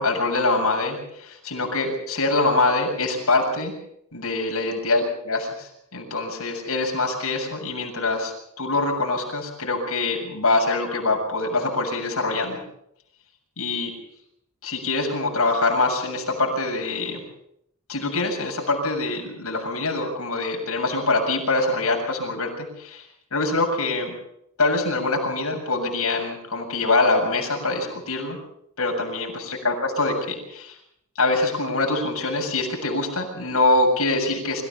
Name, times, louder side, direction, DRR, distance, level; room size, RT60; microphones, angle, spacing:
voice 1, 0.0-3.7 4.1-12.6 13.6-14.0 14.6-17.2 17.9-23.0 23.3-24.1 24.6-28.4 28.8-30.7 31.2-34.6, left 2 dB, 75° left, 1 dB, 7.3 m, -24 dB
25.5 x 15.5 x 7.3 m, 0.74 s
head